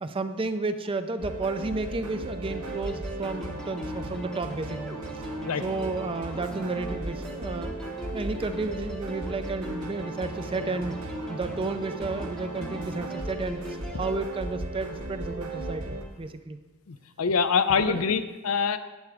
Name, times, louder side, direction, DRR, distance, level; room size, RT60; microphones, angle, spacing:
voice 1, 0.0-5.2 5.6-7.8 8.1-11.0 11.3-16.6 17.9-18.2, right 3 dB, 25° right, 9 dB, 0.5 m, -32 dB
sound 1, 1.2-16.0, right 2 dB, 80° right, 2.1 m, -36 dB
sound 2, 2.5-14.2, left 1 dB, ahead, 0.8 m, -42 dB
voice 2, 16.9-18.8, left 5 dB, 75° left, 11 dB, 0.5 m, -25 dB
11.5 x 8.8 x 3.5 m, 1.2 s
head